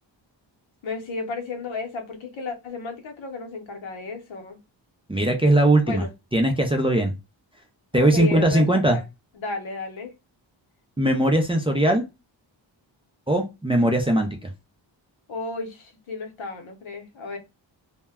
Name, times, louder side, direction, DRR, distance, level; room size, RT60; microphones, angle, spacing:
voice 1, 0.8-4.6 5.8-6.1 7.9-9.0 9.4-10.1 15.3-17.4, left 3 dB, 85° left, 0.8 m, -33 dB
voice 2, 5.1-6.0 6.3-7.1 7.9-9.0 11.0-12.0 13.3-14.5, right 1 dB, 15° right, 0.3 m, -20 dB
2.1 x 2.1 x 3.3 m
wide cardioid pair, 110°, 46 cm